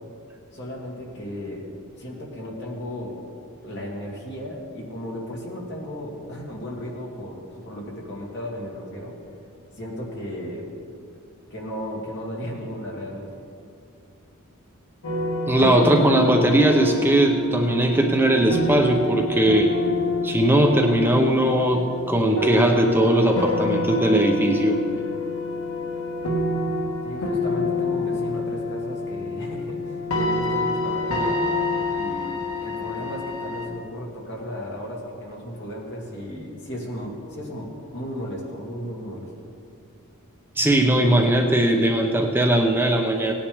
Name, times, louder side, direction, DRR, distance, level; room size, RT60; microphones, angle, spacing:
voice 1, 0.5-1.7 2.0-3.2 3.6-9.2 9.8-10.7 11.5-13.3 27.0-31.4 31.9-32.4 32.6-39.3, equal, 55° left, -3 dB, 2.5 m, -35 dB
sound 1, 15.0-33.7, left 2 dB, 70° left, 1.9 m, -27 dB
voice 2, 15.5-19.7 20.2-24.8 40.6-43.3, right 1 dB, 10° right, 2 dB, 0.6 m, -19 dB
18.0 x 10.0 x 3.5 m, 2.4 s
head